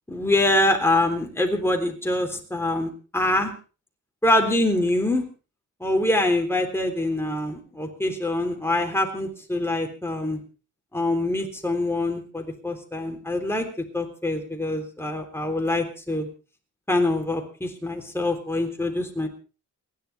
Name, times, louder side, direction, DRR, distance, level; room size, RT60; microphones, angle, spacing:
voice 1, 0.1-3.5 4.2-5.2 5.8-10.4 10.9-13.7 13.9-16.3 16.9-19.3, left 1 dB, 5° left, 2 dB, 3.5 m, -24 dB
29.0 x 11.0 x 3.5 m, 0.35 s
wide cardioid pair, 120°, 33 cm